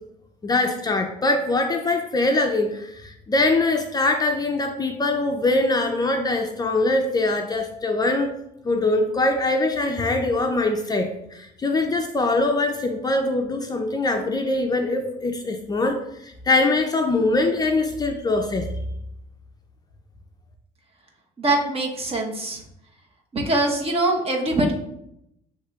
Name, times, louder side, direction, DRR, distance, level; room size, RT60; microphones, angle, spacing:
voice 1, 0.4-8.3 8.6-18.7, left 2 dB, 25° left, 3 dB, 0.4 m, -23 dB
voice 2, 21.4-22.6 23.3-24.7, right 2 dB, 35° right, 1 dB, 1.0 m, -23 dB
7.9 x 2.8 x 2.3 m, 0.80 s
cardioid pair, 110°, 17 cm